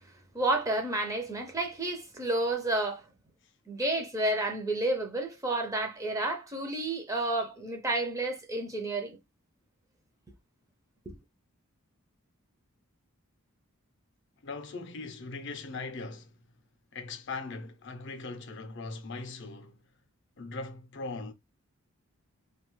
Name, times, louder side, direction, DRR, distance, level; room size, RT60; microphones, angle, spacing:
voice 1, 0.3-3.0 3.7-9.2 11.1-11.2, right 2 dB, 15° right, 0.4 m, -30 dB
voice 2, 14.4-16.4 16.9-19.8 20.4-21.3, left 3 dB, 55° left, 0.5 m, -40 dB
2.7 x 2.3 x 3.0 m
head